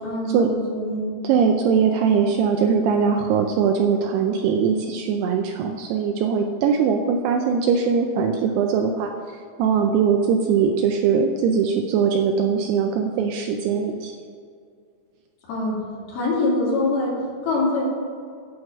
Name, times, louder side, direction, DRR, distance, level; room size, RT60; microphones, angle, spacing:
voice 1, 0.0-1.1 15.5-15.8 16.1-17.8, left 2 dB, 60° left, -6 dB, 4.1 m, -24 dB
voice 2, 1.2-9.1 9.6-14.1, right 6 dB, 80° right, 3 dB, 2.4 m, -21 dB
9.5 x 4.9 x 7.1 m, 2.2 s
omnidirectional pair, 5.1 m